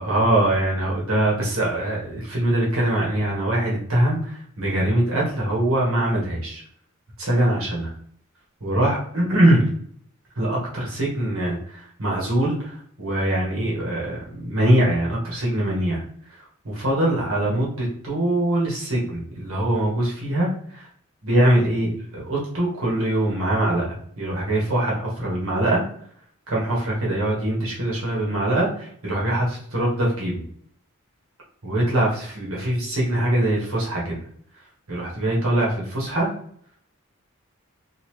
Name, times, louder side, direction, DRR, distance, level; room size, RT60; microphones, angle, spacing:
voice 1, 0.0-6.6 7.2-7.9 8.6-9.6 10.3-16.0 16.3-20.9 21.2-25.8 26.5-30.4 31.6-34.2 34.9-36.3, right 1 dB, 75° right, -4 dB, 1.4 m, -23 dB
3.9 x 2.5 x 3.1 m, 0.62 s
head